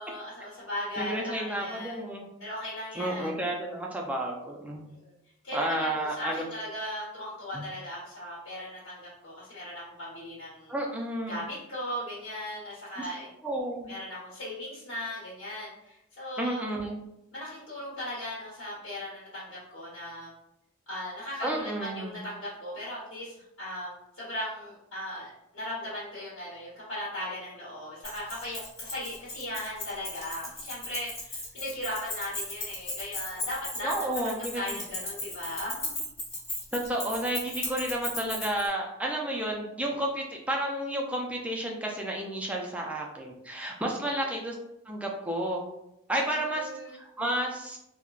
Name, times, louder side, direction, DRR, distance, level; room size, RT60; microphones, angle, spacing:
voice 1, 0.0-2.0 2.4-3.4 4.9-5.1 5.4-10.7 11.3-13.3 13.9-16.6 17.3-20.3 20.9-36.0 46.3-47.0, left 1 dB, 85° left, -8 dB, 1.1 m, -38 dB
voice 2, 1.0-2.3 3.0-4.9 5.5-6.4 7.5-7.6 10.7-11.4 13.0-13.1 13.4-13.9 16.4-17.0 21.4-22.2 33.8-34.8 36.7-44.5 44.9-45.7 46.1-47.8, right 1 dB, 5° right, -1 dB, 0.4 m, -31 dB
Keys jangling, 28.0-38.7, left 2 dB, 25° left, 1.3 m, -36 dB
3.6 x 2.1 x 2.3 m, 0.83 s
head